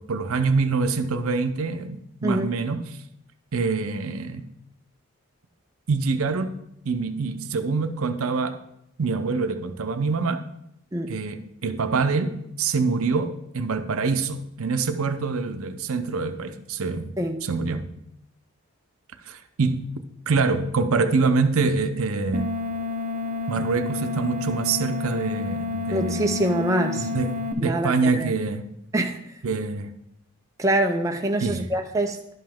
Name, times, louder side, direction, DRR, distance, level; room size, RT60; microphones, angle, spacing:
voice 1, 0.0-2.8 3.5-4.5 5.9-6.5 6.8-8.6 9.0-10.4 11.1-17.1 17.4-17.9 19.3-19.8 20.3-22.5 23.5-26.5 27.0-28.7 29.4-29.9 31.4-31.6, right 4 dB, 70° right, 9 dB, 0.6 m, -25 dB
voice 2, 2.2-2.6 10.9-11.2 17.2-17.4 25.9-27.1 27.6-28.3 28.9-29.4 30.6-32.3, right 1 dB, 15° right, 3 dB, 0.4 m, -25 dB
sound 1, 22.3-27.5, left 4 dB, 35° right, 0.9 m, -29 dB
11.0 x 5.5 x 3.5 m, 0.77 s
head